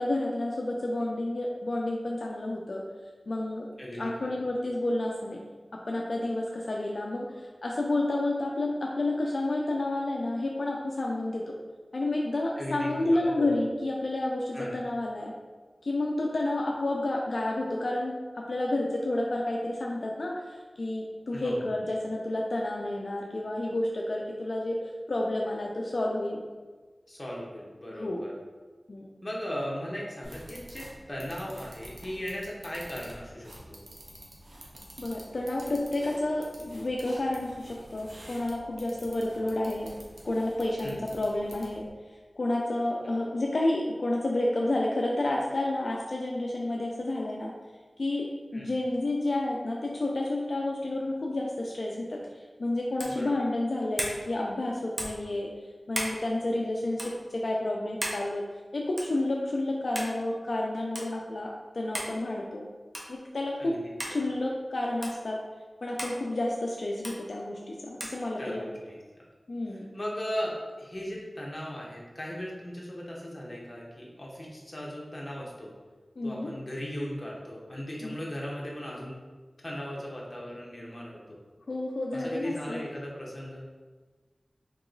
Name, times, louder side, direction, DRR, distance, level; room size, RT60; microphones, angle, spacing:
voice 1, 0.0-2.8 3.3-3.7 4.0-5.4 5.7-7.3 7.6-11.5 11.9-15.3 15.8-24.8 25.1-26.4 27.9-28.2 28.9-29.1 35.0-39.9 40.2-41.9 42.4-47.5 48.0-52.2 52.6-55.5 55.9-58.4 58.7-62.6 63.1-63.7 64.1-65.4 65.8-68.7 69.5-69.9 76.2-76.5 78.0-78.1 81.7-82.8, left 1 dB, 75° left, -2 dB, 0.4 m, -30 dB
voice 2, 3.8-4.4 12.5-13.5 14.5-14.7 21.3-21.7 27.1-28.3 29.2-33.8 40.8-41.0 48.5-48.7 53.0-53.3 63.6-64.2 68.4-69.0 69.7-75.7 76.2-79.1 79.6-81.4 82.1-83.6, equal, 35° left, -4 dB, 0.9 m, -37 dB
sound 1, 30.2-41.9, right 1 dB, 80° right, 0.7 m, -49 dB
sound 2, 53.0-53.2 54.0-54.2 55.0-55.2 55.9-56.2 56.9-57.1 58.0-58.2 59.0-59.2 59.9-60.1 60.9-61.1 61.9-62.1 62.9-63.1 64.0-64.2 65.0-65.2 66.0-66.2 67.0-67.2 68.0-68.2, right 1 dB, 40° right, 0.7 m, -34 dB
3.0 x 2.9 x 3.8 m, 1.4 s
wide cardioid pair, 70°, 0 cm